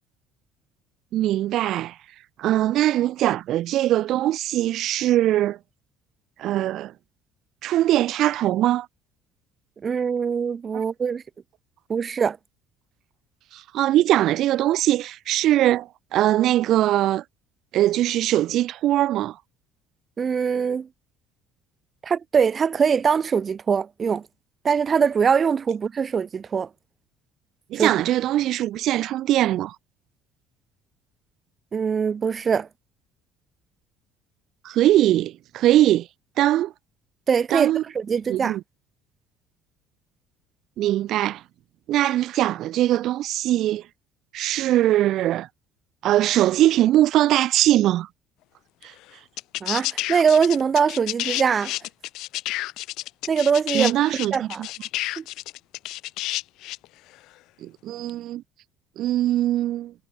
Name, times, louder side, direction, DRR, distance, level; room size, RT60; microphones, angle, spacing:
voice 1, 1.1-1.9 2.4-5.6 6.4-6.9 7.6-8.9 13.5-17.2 17.7-19.4 27.7-29.7 34.6-36.1 36.4-36.7 37.5-37.8 38.3-38.6 40.8-41.4 41.9-43.8 44.3-45.5 46.0-48.1 53.7-54.7 57.6-58.4 59.0-59.9, right 13 dB, 55° right, 0.8 m, -21 dB
voice 2, 9.8-11.2 11.9-12.4 20.2-20.9 22.0-24.2 24.6-26.7 27.7-28.0 31.7-32.7 37.3-38.6 49.6-51.7 53.3-53.9 54.3-54.6 55.2-55.3, right 6 dB, 25° right, 2.8 m, -22 dB
sound 1, 48.8-48.9 49.4-56.9 58.1-58.2, left 17 dB, 65° left, 1.9 m, -30 dB
cardioid pair, 155°, 0 cm